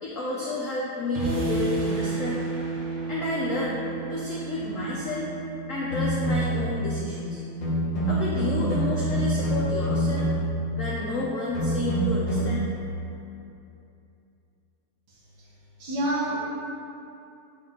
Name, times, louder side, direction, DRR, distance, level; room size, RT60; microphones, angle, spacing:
voice 1, 0.0-2.4 3.1-5.3 5.7-7.4 8.0-10.3 10.7-12.6, left 2 dB, 90° left, -6 dB, 0.7 m, -30 dB
sound 1, 1.1-7.5, right 1 dB, 75° right, 1.8 m, -41 dB
sound 2, 1.2-11.0, right 4 dB, 25° right, 0.7 m, -34 dB
sound 3, 5.9-6.7 7.6-10.6 11.5-12.6, right 1 dB, 45° left, 1.8 m, -26 dB
voice 2, 15.1-16.4, right 1 dB, 60° right, -5 dB, 1.3 m, -30 dB
7.1 x 4.3 x 3.8 m, 2.8 s
omnidirectional pair, 2.3 m